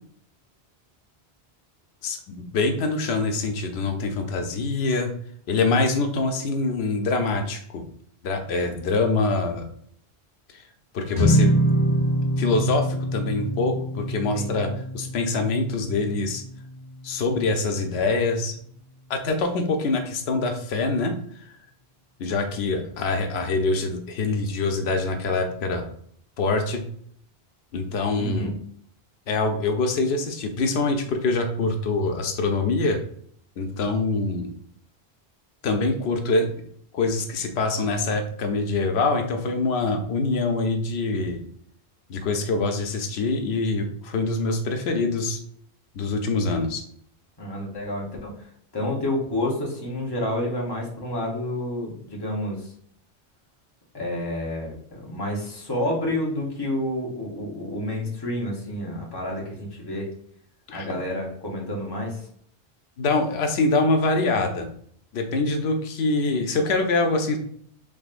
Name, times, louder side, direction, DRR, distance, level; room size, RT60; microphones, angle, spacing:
voice 1, 2.0-5.1 5.5-7.8 8.2-9.6 10.9-11.6 12.4-16.4 17.0-18.6 19.1-21.2 22.2-25.8 26.4-26.8 27.7-28.5 29.3-33.0 33.6-34.5 35.6-36.6 36.9-41.4 42.1-45.4 45.9-46.8 60.7-60.9 63.0-64.7 65.1-67.4, left 3 dB, 85° left, 5 dB, 0.8 m, -24 dB
sound 1, 11.1-17.6, right 1 dB, 60° left, 1.1 m, -25 dB
voice 2, 14.1-14.7 28.2-28.5 47.4-48.5 48.7-52.7 53.9-60.1 60.7-62.3, left 1 dB, 25° left, -2 dB, 0.9 m, -29 dB
3.7 x 3.3 x 2.4 m, 0.63 s
omnidirectional pair, 1.0 m